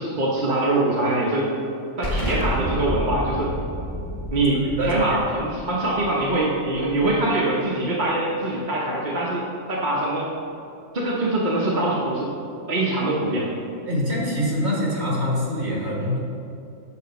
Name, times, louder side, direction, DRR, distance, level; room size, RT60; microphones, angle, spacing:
voice 1, 0.0-1.5 2.0-3.5 4.3-10.3 10.9-12.3 12.7-13.5, right 2 dB, 40° right, -5 dB, 1.1 m, -23 dB
Explosion, 2.0-7.4, equal, 70° left, 1.9 m, -30 dB
voice 2, 4.5-5.2 13.9-16.2, equal, 60° right, -3 dB, 2.0 m, -24 dB
7.0 x 6.7 x 5.2 m, 2.6 s
omnidirectional pair, 1.3 m